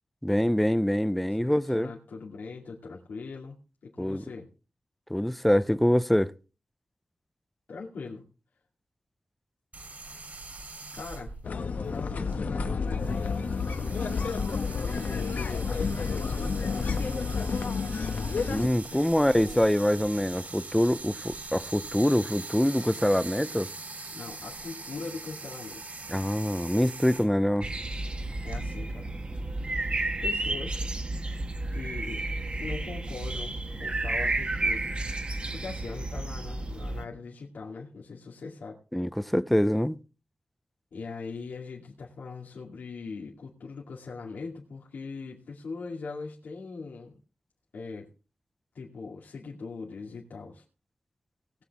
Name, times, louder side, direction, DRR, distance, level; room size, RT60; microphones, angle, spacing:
voice 1, 0.2-1.9 4.0-4.2 5.1-6.3 18.5-23.7 26.1-27.7 38.9-40.0, equal, 5° left, 0.5 m, -25 dB
voice 2, 1.4-3.6 3.9-4.5 7.7-8.2 10.9-11.3 11.9-13.2 14.9-17.0 18.9-19.6 24.1-25.8 28.4-29.1 30.2-30.9 31.1-31.2 31.7-32.2 32.6-35.0 35.5-38.8 40.9-47.2 47.7-48.1 48.7-50.6, left 4 dB, 90° left, 2.4 m, -41 dB
sound 1, 9.7-28.6, right 3 dB, 60° right, 3.3 m, -42 dB
sound 2, 11.4-18.7, left 5 dB, 70° left, 1.1 m, -30 dB
sound 3, 27.6-37.0, right 2 dB, 40° right, 1.2 m, -32 dB
19.5 x 7.9 x 3.6 m
wide cardioid pair, 95°, 3 cm